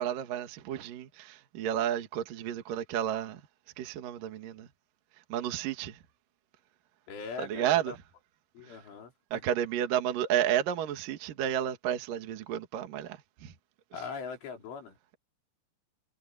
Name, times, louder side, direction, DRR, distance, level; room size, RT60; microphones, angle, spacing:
voice 1, 0.0-3.4 3.8-4.7 5.3-6.0 7.4-7.9 8.6-8.8 9.3-13.5, right 10 dB, 55° right, 2.7 m, -31 dB
voice 2, 7.1-8.0 8.5-9.4 13.9-15.0, left 5 dB, 65° left, 6.6 m, -41 dB
omnidirectional pair, 6.0 m